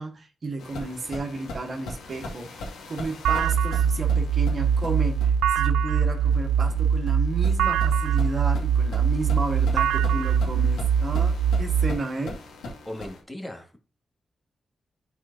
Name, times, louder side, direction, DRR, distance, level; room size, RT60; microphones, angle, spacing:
voice 1, 0.0-2.6 2.9-12.4, right 3 dB, 55° right, 1.5 m, -33 dB
sound 1, 0.6-13.2, left 2 dB, 85° left, 2.2 m, -40 dB
sound 2, 3.2-11.9, right 7 dB, 90° right, 0.3 m, -22 dB
voice 2, 12.8-13.8, left 1 dB, 10° left, 2.2 m, -37 dB
12.0 x 4.6 x 2.7 m
supercardioid pair, 40°, 0 cm